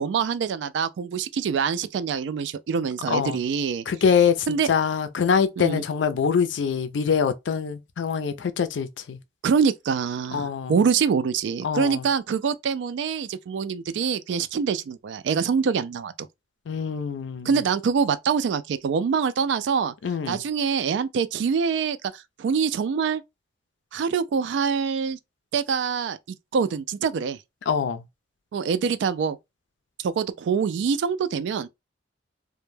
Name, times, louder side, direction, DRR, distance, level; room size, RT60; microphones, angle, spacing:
voice 1, 0.0-3.8 4.5-4.7 5.6-5.8 9.4-16.1 17.5-19.9 20.3-23.2 23.9-25.2 25.5-26.2 26.5-27.4 28.5-29.4 30.0-31.7, right 6 dB, 70° right, 0.3 m, -25 dB
voice 2, 3.1-3.4 3.9-9.2 10.3-10.8 11.6-12.1 16.7-17.5 20.0-20.4 27.7-28.0, left 6 dB, 85° left, 0.4 m, -24 dB
2.1 x 2.1 x 3.1 m
head